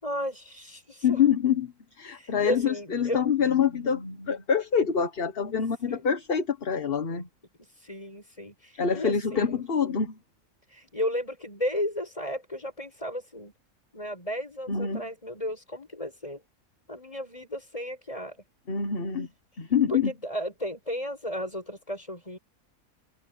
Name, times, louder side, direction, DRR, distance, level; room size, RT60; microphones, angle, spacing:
voice 1, 0.0-1.2 2.1-3.2 5.9-6.0 7.8-9.6 10.7-13.5 13.9-16.4 16.9-18.4 19.9-22.4, left 1 dB, 25° left, 8.0 m, -34 dB
voice 2, 1.0-7.3 8.8-10.2 14.7-15.0 18.7-19.3 19.6-20.1, left 7 dB, 45° left, 1.5 m, -26 dB
omnidirectional pair, 1.5 m